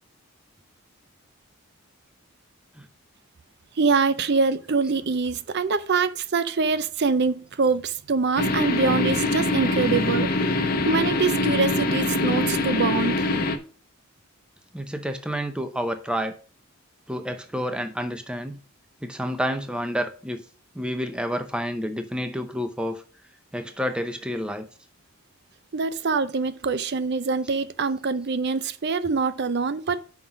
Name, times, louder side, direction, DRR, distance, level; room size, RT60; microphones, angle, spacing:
voice 1, 3.8-10.5 10.8-13.3 25.7-30.1, right 4 dB, 50° right, 0.5 m, -24 dB
sound 1, 8.4-13.6, left 2 dB, 40° left, 0.8 m, -24 dB
voice 2, 14.7-16.3 17.1-18.6 19.0-20.4 20.7-23.0 23.5-24.7, equal, 5° right, 0.6 m, -29 dB
5.9 x 5.5 x 6.0 m
head